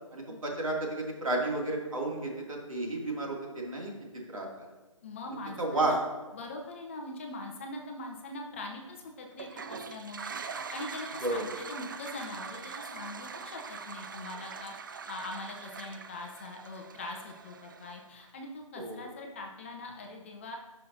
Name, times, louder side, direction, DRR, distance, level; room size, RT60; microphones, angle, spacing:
voice 1, 0.1-3.9 4.3-4.7 5.6-5.9 11.2-11.4 18.8-19.0, right 2 dB, 70° right, -1 dB, 2.5 m, -32 dB
voice 2, 5.0-6.0 6.3-10.3 10.7-14.7 15.1-20.6, left 2 dB, 25° left, 2 dB, 0.6 m, -42 dB
Toilet flush, 9.3-18.2, right 5 dB, 35° right, 0.4 m, -43 dB
11.5 x 5.6 x 2.7 m, 1.2 s
figure-of-eight pair, 150°, 18 cm